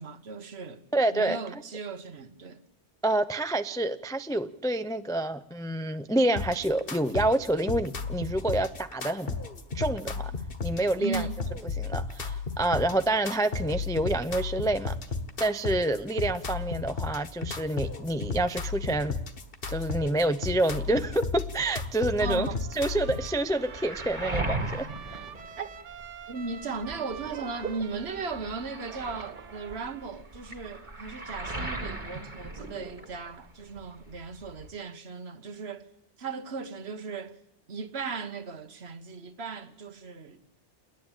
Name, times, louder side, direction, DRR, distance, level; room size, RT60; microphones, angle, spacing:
voice 1, 0.0-0.8 1.1-2.6 11.0-11.4 22.2-22.6 25.6-25.7 26.3-35.9 36.2-37.4 37.7-40.4, right 4 dB, 60° right, 1.4 m, -37 dB
voice 2, 0.9-1.6 3.0-9.4 9.7-10.3 10.6-11.3 11.6-15.0 15.4-19.2 19.7-22.5 22.7-25.2, right 1 dB, 5° left, 0.3 m, -28 dB
sound 1, 6.4-23.3, left 4 dB, 50° left, 1.5 m, -34 dB
Trumpet, 22.5-30.1, right 7 dB, 85° right, 1.3 m, -47 dB
Waves surf, 23.0-26.2 26.6-33.5 33.8-34.7, right 2 dB, 40° right, 2.3 m, -38 dB
29.0 x 10.5 x 8.9 m
omnidirectional pair, 1.2 m